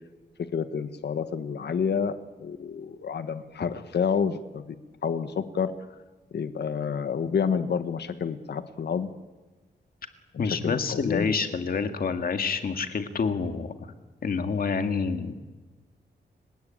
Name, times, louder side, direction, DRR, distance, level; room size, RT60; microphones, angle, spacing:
voice 1, 0.5-4.7 5.0-5.7 6.3-9.1 10.3-11.3, left 6 dB, 70° left, 10 dB, 1.4 m, -29 dB
voice 2, 10.4-13.7 14.2-15.3, left 5 dB, 55° left, 7 dB, 2.0 m, -27 dB
30.0 x 17.5 x 8.9 m, 1.2 s
wide cardioid pair, 175°, 18 cm